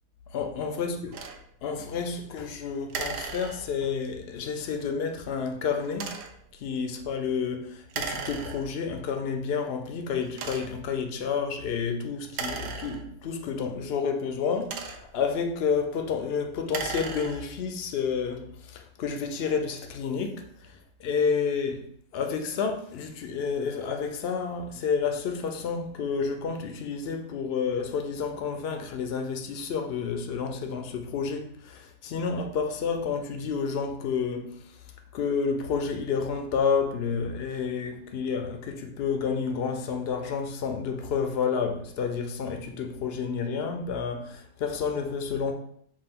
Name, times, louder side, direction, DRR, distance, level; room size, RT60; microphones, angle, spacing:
voice 1, 0.3-0.9 1.6-6.2 6.5-21.8 22.1-34.8 35.1-45.5, left 6 dB, 70° left, 0.6 m, -30 dB
sound 1, 1.1-1.4 2.9-3.9 5.9-6.5 7.9-8.9 9.6-9.7 10.3-10.9 12.3-13.4 14.4-15.3 16.6-17.6, right 5 dB, 70° right, 0.6 m, -36 dB
5.4 x 2.4 x 3.5 m
omnidirectional pair, 1.6 m